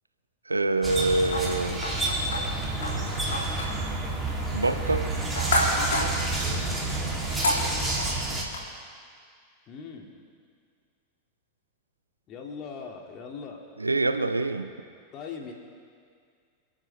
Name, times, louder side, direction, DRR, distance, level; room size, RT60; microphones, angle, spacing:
voice 1, 0.5-1.8 4.5-5.0 13.8-14.7, right 2 dB, 80° right, 9 dB, 0.7 m, -25 dB
sound 1, 0.8-8.4, right 2 dB, 5° right, 3.1 m, -29 dB
sound 2, 1.3-8.6, left 1 dB, 65° left, 3.4 m, -32 dB
voice 2, 5.9-7.3 7.6-8.0 9.7-10.1 12.3-13.6 15.1-15.5, left 5 dB, 35° left, 1 dB, 2.4 m, -41 dB
30.0 x 10.5 x 3.5 m, 2.1 s
figure-of-eight pair, 90°, 0 cm